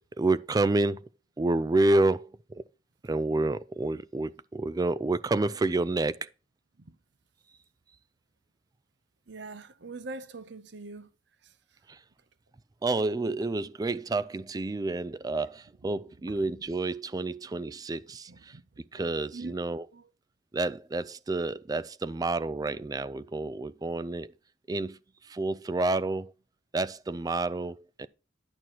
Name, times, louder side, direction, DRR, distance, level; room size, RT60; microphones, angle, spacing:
voice 1, 0.2-1.1 1.4-2.6 3.0-6.3 11.9-12.0 12.8-18.6 18.9-19.8 20.5-24.3 24.7-26.3 26.7-28.1, right 2 dB, 20° right, 0.3 m, -29 dB
voice 2, 9.3-11.1 11.4-11.8 15.8-15.9 16.3-16.5 18.3-18.6 18.9-19.6 19.9-20.1, right 3 dB, 60° right, 0.7 m, -44 dB
11.0 x 6.1 x 2.9 m
head